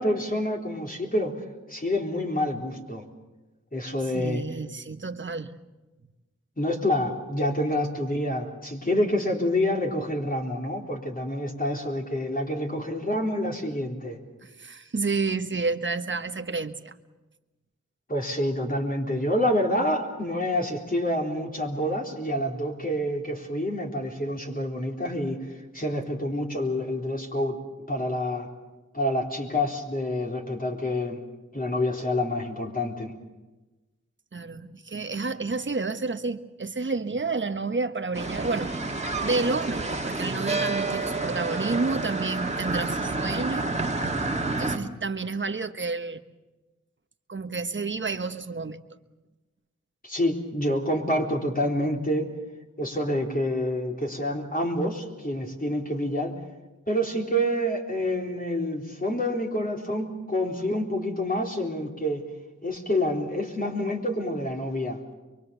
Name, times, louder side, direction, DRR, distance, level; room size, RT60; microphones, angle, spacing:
voice 1, 0.0-1.4 1.7-3.0 3.7-4.4 6.6-14.2 18.1-27.6 27.9-28.5 28.9-31.2 31.5-33.1 50.0-52.3 52.8-56.3 56.9-62.2 62.6-65.0, left 1 dB, 30° left, 0 dB, 3.8 m, -27 dB
voice 2, 4.1-5.5 14.4-16.9 34.3-38.7 39.0-43.7 44.5-46.2 47.3-48.8, right 3 dB, 40° right, 8 dB, 1.4 m, -30 dB
sound 1, 38.1-44.8, right 2 dB, 20° right, 2.1 m, -29 dB
23.5 x 23.5 x 7.0 m, 1.1 s
cardioid pair, 50°, 30 cm